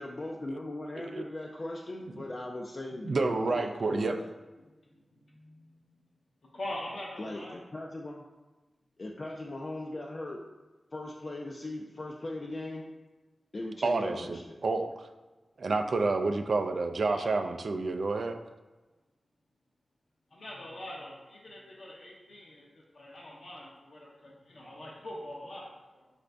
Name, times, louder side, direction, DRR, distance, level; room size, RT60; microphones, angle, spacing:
voice 1, 0.0-4.3 7.2-8.2 9.0-10.4 10.9-12.9 13.5-14.6, left 1 dB, 40° left, -2 dB, 0.3 m, -39 dB
voice 2, 3.0-4.2 13.8-15.1 15.6-18.4, right 3 dB, 65° right, 6 dB, 0.3 m, -29 dB
voice 3, 4.6-5.9 6.5-7.5 17.1-17.3 20.3-26.1, left 1 dB, 70° left, -5 dB, 0.7 m, -44 dB
5.0 x 2.6 x 3.3 m, 1.2 s
wide cardioid pair, 120°, 0 cm